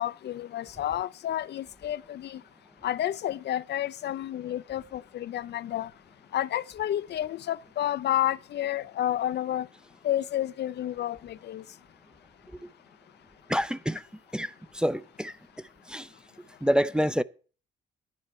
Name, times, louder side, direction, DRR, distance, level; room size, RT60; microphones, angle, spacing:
voice 1, 0.0-2.4 2.8-5.9 6.3-9.7 10.0-11.6, left 12 dB, 60° left, 0.5 m, -30 dB
voice 2, 13.5-14.0 14.3-15.3 15.9-16.1 16.6-17.2, equal, 5° right, 0.5 m, -27 dB
11.0 x 10.5 x 4.6 m
cardioid pair, 90°, 20 cm